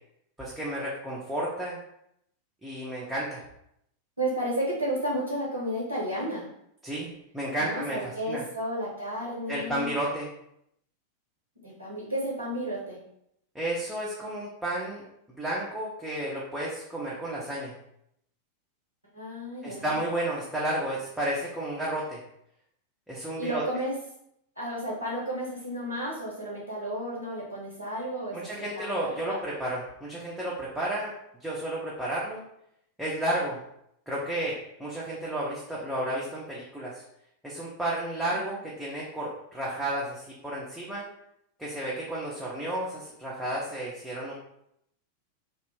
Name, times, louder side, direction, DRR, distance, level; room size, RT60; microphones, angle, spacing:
voice 1, 0.4-1.8 2.6-3.4 6.8-8.4 9.5-10.3 13.5-15.0 15.4-17.7 19.6-22.2 23.1-23.6 28.3-31.1 31.4-32.4 33.0-33.6 34.1-37.0 37.4-41.0 41.6-44.3, right 1 dB, 5° right, -7 dB, 0.6 m, -32 dB
voice 2, 4.2-6.5 7.6-9.9 11.6-13.0 19.1-20.0 23.4-24.0 24.6-29.4 38.3-38.6, right 1 dB, 85° right, -5 dB, 0.7 m, -32 dB
2.4 x 2.0 x 3.1 m, 0.76 s
figure-of-eight pair, 90°, 0 cm